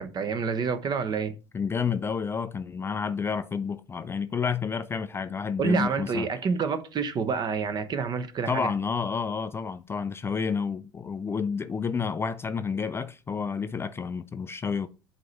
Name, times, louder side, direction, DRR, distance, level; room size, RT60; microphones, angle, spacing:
voice 1, 0.0-1.3 5.6-8.7, right 5 dB, 35° right, 0.9 m, -28 dB
voice 2, 1.5-6.3 8.5-14.9, left 6 dB, 20° left, 0.4 m, -30 dB
7.5 x 2.9 x 5.4 m
figure-of-eight pair, 70°, 12 cm